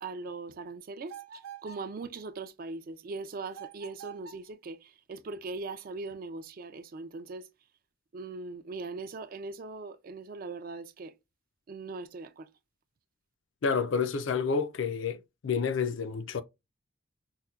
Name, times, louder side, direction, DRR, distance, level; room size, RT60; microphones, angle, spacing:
voice 1, 0.0-7.5 8.1-11.1 11.7-12.5, right 3 dB, 45° right, 0.3 m, -40 dB
sound 1, 1.1-1.9 3.5-4.5, right 8 dB, 85° right, 0.6 m, -46 dB
voice 2, 13.6-16.4, left 5 dB, 65° left, 0.4 m, -29 dB
5.6 x 2.2 x 2.3 m
head